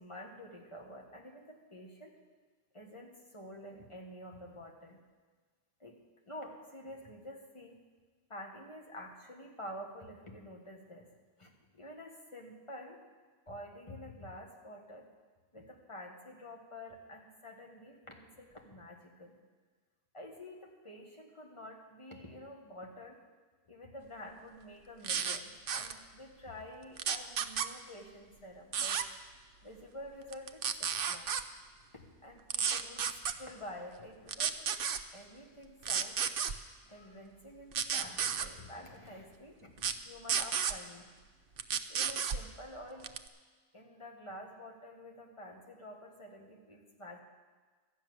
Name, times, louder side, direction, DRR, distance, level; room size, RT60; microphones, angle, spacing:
voice 1, 0.0-2.2 2.7-5.0 5.8-6.0 6.3-7.8 8.3-11.1 11.4-13.0 13.5-15.1 15.5-19.4 20.1-23.2 23.7-29.0 29.6-31.3 31.9-34.6 35.1-36.2 36.8-41.1 41.9-43.1 43.7-47.2, left 1 dB, 30° left, 1 dB, 1.6 m, -49 dB
sound 1, 25.0-25.4 25.7-25.9 27.0-27.7 28.7-29.0 30.3-31.4 32.5-33.3 34.3-35.0 35.8-36.5 37.7-38.5 39.8-39.9 40.3-40.7 41.6-42.4 43.0-43.3, right 7 dB, 60° right, 0.8 m, -32 dB
13.0 x 6.6 x 9.4 m, 1.4 s
omnidirectional pair, 1.1 m